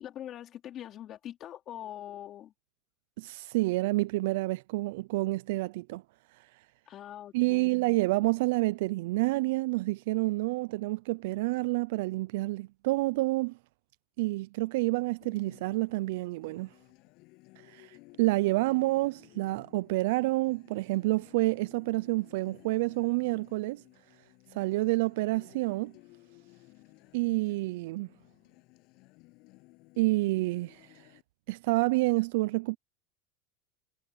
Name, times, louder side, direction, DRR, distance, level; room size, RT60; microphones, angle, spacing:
voice 1, 0.0-2.5 6.9-7.8, left 11 dB, 35° left, 2.9 m, -43 dB
voice 2, 3.2-6.0 7.3-13.6 14.2-16.7 17.6-23.8 24.5-25.9 27.1-28.1 30.0-31.1 31.5-32.8, right 21 dB, 75° right, 0.3 m, -28 dB
Acoustic guitar, 15.2-31.2, left 24 dB, 55° left, 7.9 m, -58 dB
supercardioid pair, 145°, 0 cm